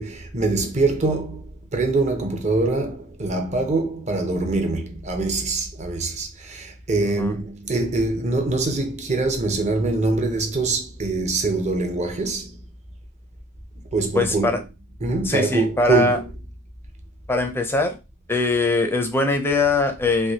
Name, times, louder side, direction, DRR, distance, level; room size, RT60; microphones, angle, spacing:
voice 1, 0.0-12.6 13.9-14.6 15.0-16.4, right 3 dB, 30° right, 0.6 m, -24 dB
voice 2, 14.1-14.6 15.2-16.2 17.3-17.9 18.3-20.3, left 3 dB, 10° left, 0.5 m, -21 dB
3.3 x 2.6 x 2.8 m
head